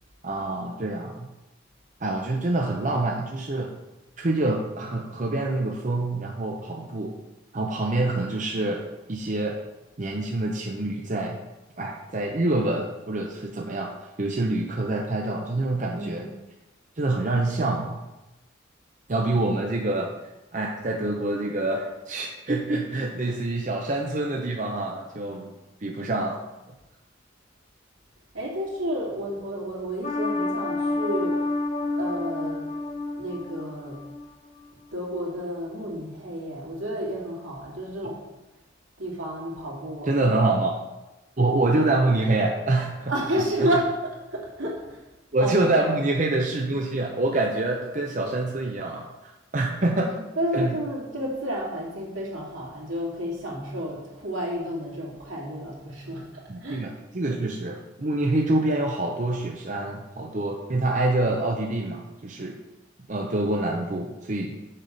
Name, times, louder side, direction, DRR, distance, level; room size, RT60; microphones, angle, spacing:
voice 1, 0.2-1.3 2.0-3.7 4.2-7.2 7.5-9.6 10.0-11.4 11.8-13.9 14.2-16.3 17.0-18.0 19.1-20.1 20.5-25.5 25.8-26.4 38.0-38.1 40.1-40.8 41.4-43.1 43.6-43.7 45.3-50.3 50.5-50.7 56.5-62.6 63.1-64.5, right 2 dB, 40° right, 0 dB, 0.7 m, -26 dB
voice 2, 15.9-16.3 28.3-31.4 32.0-32.7 33.2-34.0 34.9-38.2 39.0-40.1 43.1-43.9 44.3-45.1 45.4-45.6 50.4-56.9, equal, 85° right, -3 dB, 2.3 m, -31 dB
sound 1, 30.0-34.2 34.6-34.7, left 2 dB, 35° left, 0.8 m, -29 dB
6.6 x 5.9 x 5.2 m, 1.0 s
head